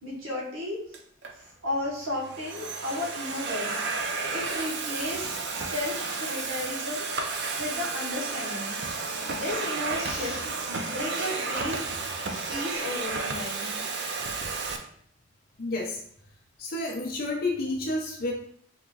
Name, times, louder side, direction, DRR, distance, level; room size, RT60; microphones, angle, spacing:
voice 1, 0.0-1.0 1.3-8.8 9.2-12.2 12.5-13.7, left 1 dB, 80° right, -4 dB, 1.2 m, -34 dB
Domestic sounds home sounds, 0.9-1.3 2.1-14.8, right 4 dB, 55° right, 0.4 m, -32 dB
Respiratory sounds, 9.9-10.5 11.1-11.3 12.2-12.7 13.3-14.1, equal, 5° right, 0.6 m, -44 dB
voice 2, 15.6-16.0 16.6-18.3, left 2 dB, 45° left, -2 dB, 0.5 m, -30 dB
3.7 x 3.0 x 2.3 m, 0.63 s
head